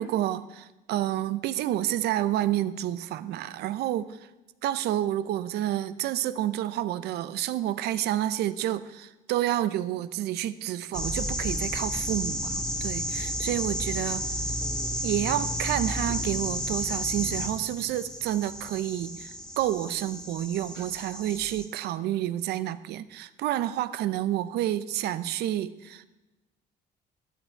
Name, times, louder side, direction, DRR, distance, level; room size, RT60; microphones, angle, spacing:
voice 1, 0.0-4.2 4.6-14.3 15.0-26.1, right 13 dB, 75° right, 14 dB, 0.7 m, -29 dB
sound 1, 10.9-21.7, equal, 5° left, 1.9 m, -32 dB
13.5 x 12.5 x 4.6 m, 1.0 s
cardioid pair, 110°, 17 cm